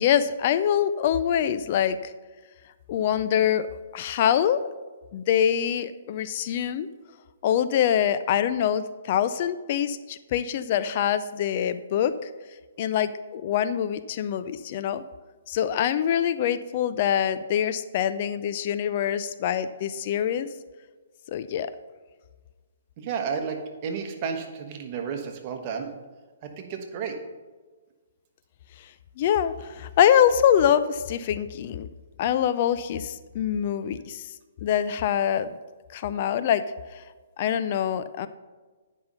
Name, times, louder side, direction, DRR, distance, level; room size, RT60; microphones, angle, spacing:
voice 1, 0.0-2.1 2.9-3.7 3.9-4.6 5.1-6.9 7.4-12.1 12.8-15.0 15.5-20.5 21.3-21.7 28.8-28.9 29.2-31.9 32.2-34.3 34.6-35.5 35.9-36.6 36.9-37.0 37.4-38.3, left 9 dB, 45° left, 12 dB, 0.4 m, -24 dB
voice 2, 23.0-23.6 23.8-25.9 26.6-27.1, right 6 dB, 40° right, 4 dB, 1.3 m, -31 dB
9.7 x 5.4 x 5.5 m, 1.3 s
hypercardioid pair, 135°, 0 cm